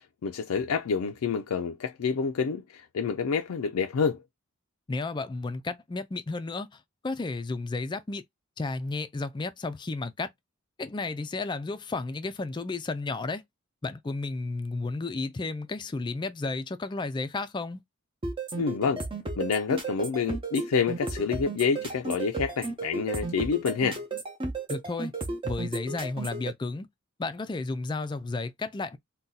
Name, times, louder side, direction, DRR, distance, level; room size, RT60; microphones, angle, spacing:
voice 1, 0.0-4.2 18.5-19.0 19.4-24.0, left 5 dB, 90° left, 0.4 m, -28 dB
voice 2, 4.9-8.2 8.6-10.3 10.8-13.4 13.8-17.8 24.7-25.1 25.4-26.9 27.2-29.0, left 3 dB, 20° left, 0.3 m, -33 dB
sound 1, 18.2-26.5, right 3 dB, 25° right, 0.7 m, -33 dB
2.6 x 2.2 x 3.8 m
head